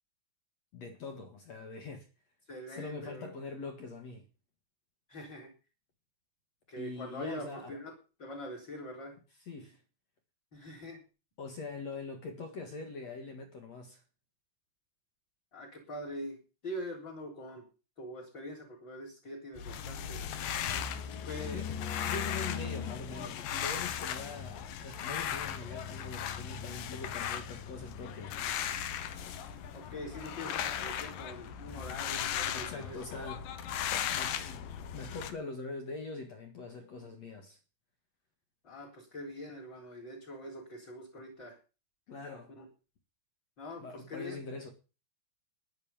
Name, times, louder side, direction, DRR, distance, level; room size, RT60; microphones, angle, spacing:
voice 1, 0.7-2.1 2.7-4.2 6.8-7.7 9.4-9.8 11.4-14.0 21.5-21.7 22.1-28.5 32.5-33.5 34.1-34.7 34.9-37.6 42.1-42.5 43.8-44.7, left 3 dB, 60° left, 1.8 m, -43 dB
voice 2, 2.5-3.3 5.1-5.5 6.7-7.9 8.2-9.2 10.5-11.0 15.5-17.6 18.0-20.2 21.2-21.6 29.7-33.2 38.6-41.6 42.6-42.7 43.6-44.4, left 1 dB, 25° left, 4.3 m, -43 dB
sound 1, 19.6-35.3, left 9 dB, 85° left, 1.9 m, -37 dB
11.5 x 11.0 x 7.2 m
omnidirectional pair, 5.9 m